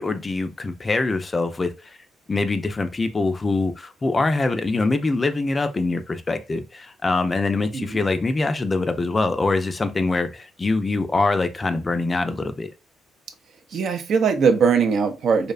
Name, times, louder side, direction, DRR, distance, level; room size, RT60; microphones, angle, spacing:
voice 1, 0.0-2.0 2.3-12.7, left 3 dB, 25° left, 0.3 m, -24 dB
voice 2, 13.7-15.5, right 5 dB, 65° right, 0.4 m, -20 dB
2.6 x 2.1 x 2.4 m
cardioid pair, 90°, 0 cm